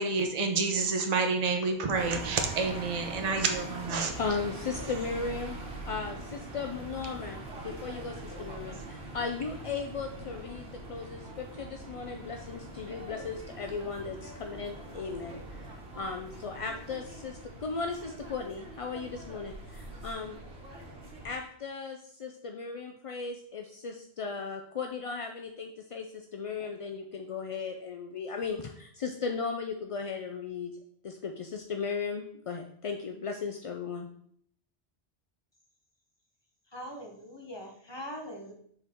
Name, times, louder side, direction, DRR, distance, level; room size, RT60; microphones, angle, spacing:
voice 1, 0.0-4.1, right 4 dB, 40° right, 4 dB, 0.9 m, -29 dB
sound 1, 2.0-21.3, right 2 dB, 75° right, 1.5 m, -43 dB
voice 2, 4.2-5.6 5.9-20.4 21.2-30.7 31.0-34.1, left 5 dB, 50° left, 4 dB, 0.4 m, -36 dB
voice 3, 36.7-38.5, equal, 25° left, 2 dB, 1.0 m, -42 dB
6.7 x 4.6 x 3.6 m, 0.65 s
omnidirectional pair, 1.1 m